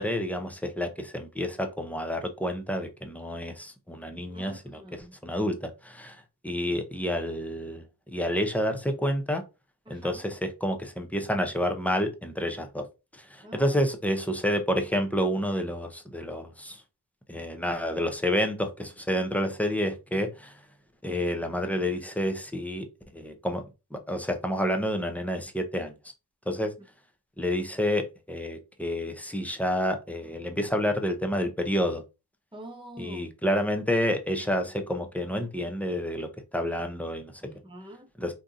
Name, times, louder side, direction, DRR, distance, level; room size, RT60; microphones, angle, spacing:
voice 1, 0.0-4.8 5.2-7.8 8.1-9.4 9.9-12.9 13.1-16.8 17.3-20.6 21.0-22.9 23.1-23.6 23.9-25.9 26.5-26.7 27.4-32.0 33.0-37.3 38.2-38.3, equal, 5° left, 0.5 m, -29 dB
voice 2, 4.3-5.2 9.9-10.2 13.4-13.8 32.5-33.3 37.4-38.1, right 1 dB, 10° right, 0.9 m, -45 dB
3.6 x 2.7 x 2.5 m
wide cardioid pair, 75°, 41 cm